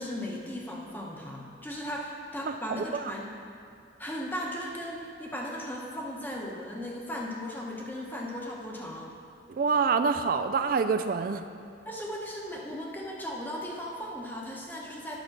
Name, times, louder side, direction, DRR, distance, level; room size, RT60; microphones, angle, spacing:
voice 1, 0.0-3.3 4.0-9.1 11.8-15.2, equal, 10° left, -2 dB, 0.9 m, -37 dB
voice 2, 2.5-3.1 9.5-11.5, right 5 dB, 50° right, 9 dB, 0.3 m, -27 dB
9.1 x 5.1 x 5.8 m, 2.4 s
head